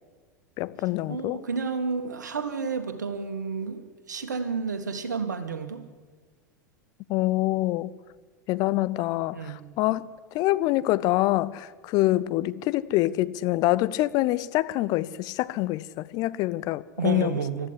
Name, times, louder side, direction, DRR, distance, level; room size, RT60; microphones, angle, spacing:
voice 1, 0.6-1.4 7.1-7.9 8.5-10.1 10.3-17.4, left 17 dB, 40° left, 0.7 m, -25 dB
voice 2, 1.1-3.8 4.1-5.8 9.3-9.6 17.0-17.7, right 5 dB, 75° right, 2.0 m, -30 dB
22.0 x 13.5 x 9.9 m
figure-of-eight pair, 85°, 10 cm